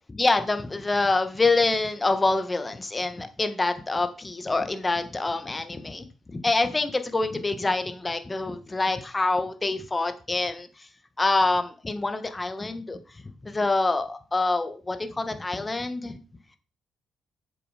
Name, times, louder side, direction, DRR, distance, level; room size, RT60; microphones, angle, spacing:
voice 1, 0.1-10.7 11.2-13.0 13.4-16.2, left 3 dB, 25° left, 8 dB, 1.3 m, -26 dB
7.8 x 6.9 x 5.0 m, 0.35 s
cardioid pair, 75°, 0 cm